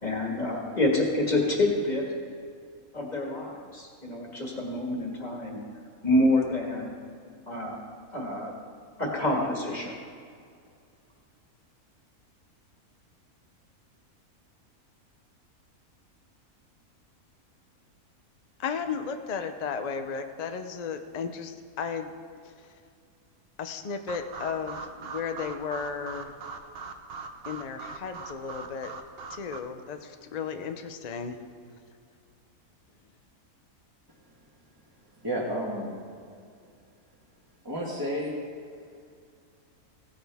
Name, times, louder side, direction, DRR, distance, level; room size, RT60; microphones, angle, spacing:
voice 1, 0.0-2.1 2.9-5.6 6.0-6.9 7.5-7.8 8.1-8.5 9.0-9.9, left 1 dB, 30° left, -1 dB, 1.9 m, -27 dB
voice 2, 18.6-22.1 22.4-22.8 23.6-26.4 27.5-28.9 29.3-31.4, left 6 dB, 80° left, 7 dB, 0.3 m, -34 dB
sound 1, 24.1-29.6, right 4 dB, 50° right, 0.8 m, -41 dB
voice 3, 35.2-35.9 37.6-38.3, equal, 15° right, -7 dB, 1.4 m, -31 dB
16.5 x 10.0 x 3.5 m, 2.3 s
omnidirectional pair, 1.6 m